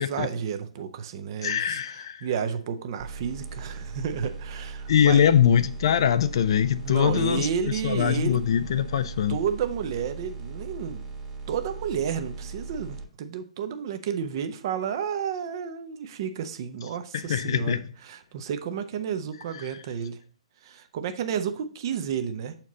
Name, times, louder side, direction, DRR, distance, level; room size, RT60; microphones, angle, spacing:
voice 1, 0.0-1.8 2.2-5.2 6.8-8.4 9.3-11.0 11.5-17.8 18.1-20.2 20.6-22.6, right 7 dB, 40° right, 0.8 m, -31 dB
voice 2, 1.4-2.3 4.9-9.4 17.1-17.9, left 9 dB, 50° left, 0.5 m, -23 dB
sound 1, 3.0-13.0, right 4 dB, 15° right, 1.3 m, -39 dB
7.1 x 4.4 x 3.9 m
figure-of-eight pair, 125°, 3 cm